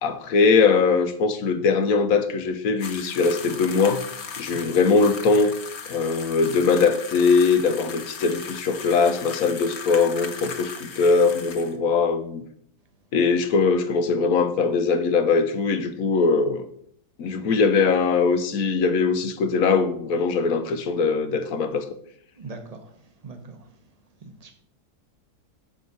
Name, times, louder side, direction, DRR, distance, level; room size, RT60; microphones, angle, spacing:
voice 1, 0.0-4.0 4.4-5.5 5.9-12.4 13.1-16.7 17.2-21.8, left 4 dB, 70° left, 8 dB, 1.1 m, -21 dB
sound 1, 2.8-11.7, left 6 dB, 55° left, 1.0 m, -37 dB
voice 2, 22.4-22.8 23.2-23.6 24.4-24.5, right 3 dB, 30° right, 6 dB, 0.9 m, -39 dB
7.6 x 5.1 x 5.3 m, 0.66 s
omnidirectional pair, 1.6 m